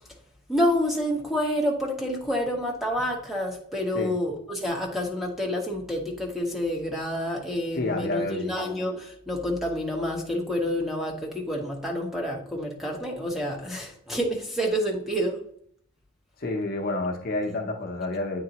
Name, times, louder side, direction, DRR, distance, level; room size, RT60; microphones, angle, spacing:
voice 1, 0.5-15.4, equal, ahead, 0 dB, 1.0 m, -28 dB
voice 2, 7.8-8.5 16.4-18.4, left 2 dB, 45° left, 2 dB, 0.6 m, -29 dB
8.7 x 3.8 x 2.9 m, 0.64 s
head